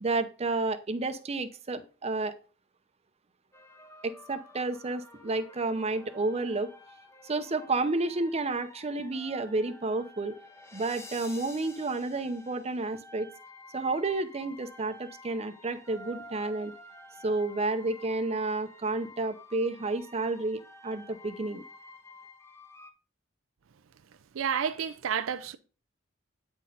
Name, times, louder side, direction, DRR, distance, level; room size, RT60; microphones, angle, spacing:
voice 1, 0.0-2.4 4.0-6.7 7.2-10.4 10.7-13.3 13.7-16.7 17.2-21.6, right 3 dB, 30° right, 0.6 m, -31 dB
sound 1, 3.5-22.9, left 2 dB, 15° left, 0.7 m, -51 dB
voice 2, 24.3-25.6, right 7 dB, 85° right, 0.4 m, -30 dB
8.7 x 4.2 x 3.9 m
head